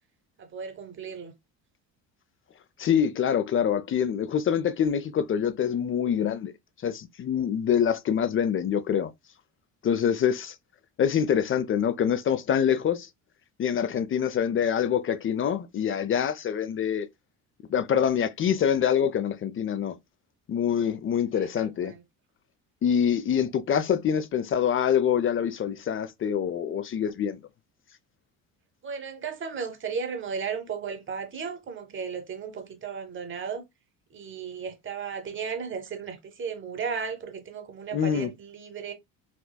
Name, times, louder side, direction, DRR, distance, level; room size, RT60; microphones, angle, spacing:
voice 1, 0.4-1.3 21.3-22.0 28.8-33.6 34.1-38.9, right 6 dB, 30° right, 0.9 m, -35 dB
voice 2, 2.8-6.5 6.8-9.1 9.8-10.6 11.0-13.1 13.6-17.1 17.7-20.0 20.5-21.9 22.8-27.4 37.9-38.3, left 8 dB, 35° left, 0.5 m, -25 dB
4.3 x 2.2 x 2.2 m
supercardioid pair, 70°, 39 cm